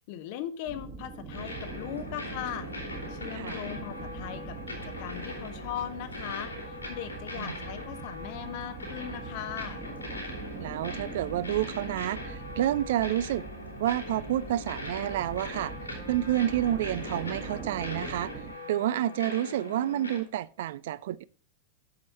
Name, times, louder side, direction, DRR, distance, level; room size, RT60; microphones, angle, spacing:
voice 1, 0.1-2.7 3.1-9.8, left 11 dB, 50° left, 0.8 m, -39 dB
sound 1, 0.7-18.5, right 5 dB, 30° right, 1.4 m, -42 dB
sound 2, 1.3-20.2, left 2 dB, 85° left, 2.9 m, -41 dB
voice 2, 3.3-3.7 7.3-7.6 10.6-13.5 13.8-15.7 16.1-18.3 18.7-21.2, right 13 dB, 55° right, 0.4 m, -29 dB
7.8 x 6.9 x 4.1 m
figure-of-eight pair, 90°, 0 cm